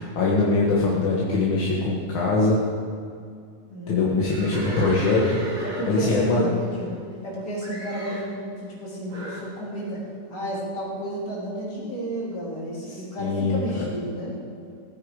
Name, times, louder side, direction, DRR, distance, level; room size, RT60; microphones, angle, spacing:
voice 1, 0.0-2.6 3.9-5.4 5.9-6.4 12.9-13.8, left 3 dB, 45° left, -5 dB, 2.0 m, -22 dB
voice 2, 3.6-4.5 5.6-6.9 7.2-10.0 10.3-14.4, equal, 30° left, -5 dB, 4.0 m, -32 dB
Livestock farm animals working animals, 4.2-7.3 7.6-8.3 9.1-9.5, right 1 dB, 80° right, 4.6 m, -36 dB
17.0 x 9.5 x 4.8 m, 2.3 s
omnidirectional pair, 3.7 m